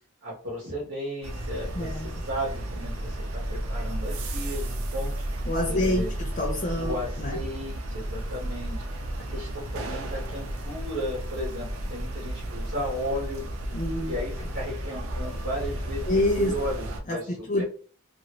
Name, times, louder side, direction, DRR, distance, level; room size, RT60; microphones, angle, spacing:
voice 1, 0.2-5.1 5.7-6.1 6.8-9.0 9.3-13.5 14.0-16.1 16.4-17.6, equal, 60° right, -6 dB, 1.1 m, -35 dB
sound 1, 1.2-17.0, right 1 dB, 90° right, 0.6 m, -33 dB
voice 2, 1.7-2.1 5.5-7.4 13.7-14.2 16.1-16.5 17.1-17.6, left 1 dB, 35° left, -1 dB, 0.5 m, -27 dB
2.8 x 2.5 x 3.0 m, 0.41 s
head